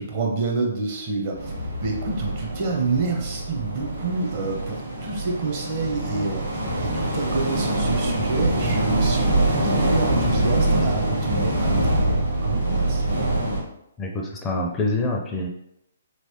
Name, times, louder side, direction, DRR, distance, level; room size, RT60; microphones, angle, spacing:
voice 1, 0.0-13.4, right 3 dB, 45° right, 0 dB, 0.8 m, -28 dB
sound 1, 1.3-13.6, right 1 dB, 85° right, 1.3 m, -24 dB
voice 2, 14.0-15.5, left 2 dB, 15° left, 0 dB, 0.5 m, -26 dB
3.2 x 3.0 x 2.8 m, 0.80 s
figure-of-eight pair, 130°, 0 cm